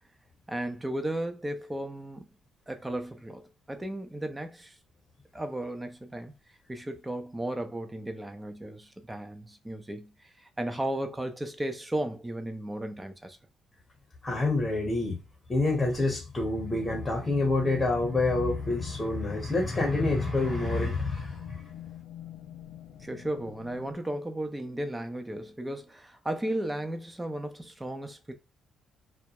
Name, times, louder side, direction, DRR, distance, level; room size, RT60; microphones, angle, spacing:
voice 1, 0.5-2.2 2.7-4.8 5.3-6.3 6.7-13.4 23.0-28.3, right 1 dB, 10° right, 0.5 m, -35 dB
voice 2, 14.2-15.2 15.5-21.4, left 2 dB, 15° left, 0.9 m, -27 dB
sound 1, 16.7-24.0, left 11 dB, 85° left, 0.4 m, -45 dB
2.2 x 2.0 x 2.8 m
cardioid pair, 90°, 0 cm